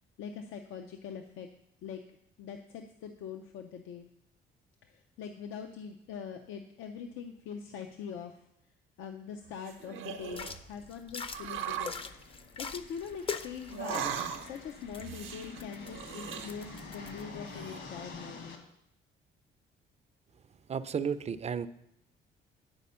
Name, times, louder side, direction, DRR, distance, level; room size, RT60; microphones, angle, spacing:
voice 1, 0.2-1.5 1.8-2.0 2.4-4.1 4.8-8.5 9.0-12.1 12.6-18.6, left 7 dB, 85° left, 6 dB, 0.6 m, -43 dB
sound 1, 9.4-10.6 11.3-12.0 13.7-14.7 15.0-16.9 17.2-17.8, right 8 dB, 80° right, 0.7 m, -39 dB
sound 2, 10.3-17.2, left 5 dB, 30° left, 0.5 m, -43 dB
sound 3, 11.3-18.6, left 3 dB, 70° left, 1.4 m, -48 dB
voice 2, 20.7-21.7, right 7 dB, 35° right, 13 dB, 0.4 m, -33 dB
9.7 x 4.2 x 5.5 m, 0.79 s
cardioid pair, 90°, 20 cm